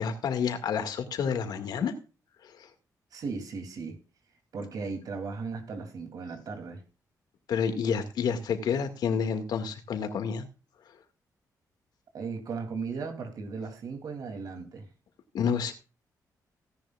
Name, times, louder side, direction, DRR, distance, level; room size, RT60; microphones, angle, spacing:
voice 1, 0.0-1.9 2.4-2.7 7.5-10.5 15.3-15.7, left 6 dB, 90° left, 2.1 m, -29 dB
voice 2, 3.1-4.0 4.5-6.8 12.1-14.9, right 4 dB, 65° right, 3.0 m, -36 dB
17.0 x 10.5 x 2.4 m
wide cardioid pair, 135°, 7 cm